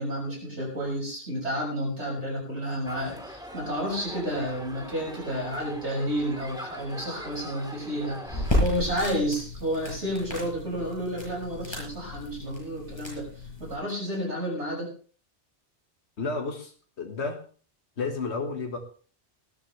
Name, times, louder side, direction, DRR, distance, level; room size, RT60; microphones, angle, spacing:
voice 1, 0.0-13.3 13.6-14.9, equal, 90° right, -2 dB, 6.8 m, -31 dB
sound 1, 2.9-8.6, equal, 5° right, 2.6 m, -42 dB
sound 2, 8.2-13.7, left 1 dB, 25° left, 7.3 m, -32 dB
voice 2, 16.2-17.4 18.0-18.8, left 4 dB, 80° left, 2 dB, 2.0 m, -31 dB
19.5 x 12.5 x 3.4 m, 0.40 s
omnidirectional pair, 1.1 m